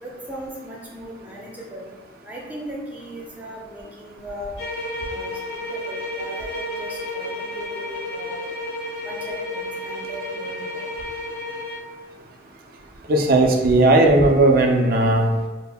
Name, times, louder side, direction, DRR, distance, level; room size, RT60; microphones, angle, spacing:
voice 1, 0.0-1.8 2.3-4.6 5.1-8.5 9.0-10.9, equal, 10° right, -4 dB, 0.6 m, -38 dB
sound 1, 4.6-11.9, left 1 dB, 60° left, 0.7 m, -31 dB
voice 2, 13.1-15.3, right 2 dB, 50° right, 2 dB, 0.4 m, -16 dB
5.2 x 2.0 x 2.2 m, 1.3 s
head